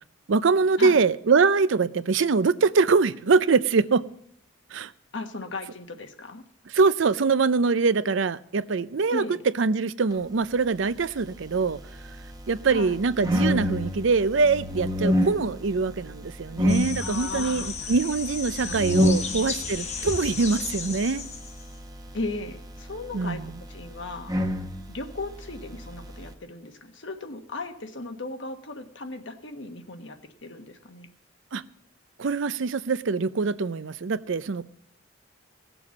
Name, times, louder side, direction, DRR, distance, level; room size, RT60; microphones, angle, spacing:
voice 1, 0.3-4.0 4.7-4.9 6.7-9.2 9.6-11.8 12.5-21.2 23.1-23.6 31.5-31.6 32.2-34.6, right 4 dB, 70° right, 0.5 m, -23 dB
voice 2, 5.1-6.4 9.1-9.4 12.7-13.0 17.0-17.9 18.6-18.7 19.1-19.5 22.1-24.3 24.9-31.1, left 3 dB, 65° left, 1.3 m, -36 dB
sound 1, 10.9-26.3, equal, 20° right, 0.9 m, -30 dB
sound 2, 16.7-21.8, left 5 dB, 35° left, 1.1 m, -34 dB
17.5 x 7.0 x 7.2 m
head